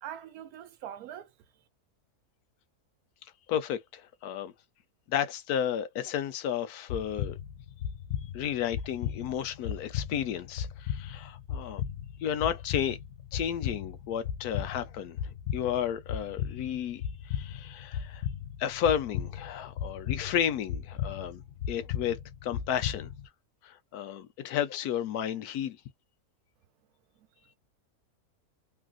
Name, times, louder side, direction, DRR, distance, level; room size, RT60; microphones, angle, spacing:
voice 1, 0.0-1.3, right 10 dB, 75° right, 1.1 m, -42 dB
voice 2, 3.5-4.5 5.1-7.4 8.2-11.8 12.2-13.0 13.3-15.2 15.5-18.3 18.6-21.4 21.7-23.1 23.6-25.8, left 9 dB, 80° left, 1.1 m, -32 dB
sound 1, 6.9-23.3, left 9 dB, 65° left, 0.7 m, -36 dB
3.3 x 2.4 x 2.4 m
omnidirectional pair, 1.6 m